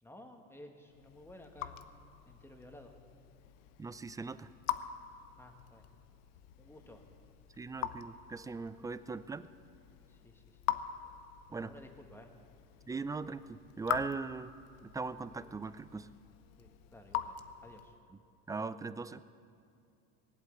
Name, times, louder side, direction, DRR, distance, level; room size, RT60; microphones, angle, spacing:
voice 1, 0.0-1.8 2.3-2.9 5.4-5.8 6.6-7.0 10.1-10.4 11.5-12.3 16.6-17.3 17.6-17.9, left 1 dB, 5° left, 4 dB, 1.8 m, -54 dB
Raindrop / Drip, 0.9-18.1, left 12 dB, 85° left, 0.8 m, -44 dB
voice 2, 3.8-4.5 7.6-9.5 11.5-11.7 12.9-14.5 14.8-16.1 18.5-19.2, right 4 dB, 10° right, 15 dB, 0.3 m, -39 dB
19.0 x 8.2 x 8.1 m, 2.4 s
supercardioid pair, 95°, 38 cm